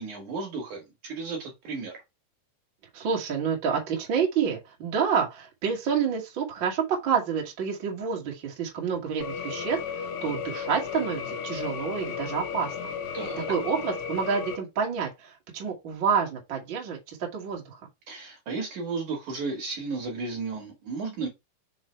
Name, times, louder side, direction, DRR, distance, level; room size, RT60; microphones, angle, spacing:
voice 1, 0.0-1.9 13.1-13.5 18.1-21.3, right 4 dB, 55° right, 2.8 m, -34 dB
voice 2, 2.9-12.9 13.5-17.8, right 6 dB, 35° right, 2.0 m, -28 dB
sound 1, 9.2-14.6, left 6 dB, 75° left, 3.0 m, -34 dB
6.4 x 4.5 x 4.5 m
omnidirectional pair, 5.1 m